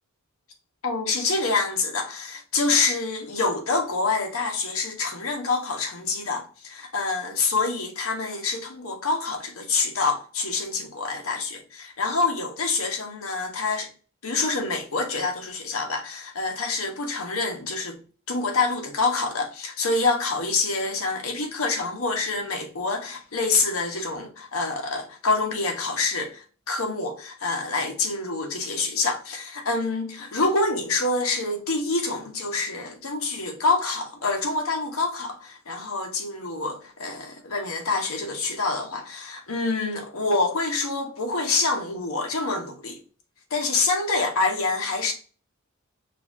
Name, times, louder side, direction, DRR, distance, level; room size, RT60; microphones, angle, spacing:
voice 1, 0.8-13.9 14.2-18.0 18.3-43.0 43.5-45.1, left 3 dB, 70° left, 0.9 m, -26 dB
5.4 x 2.4 x 2.6 m
head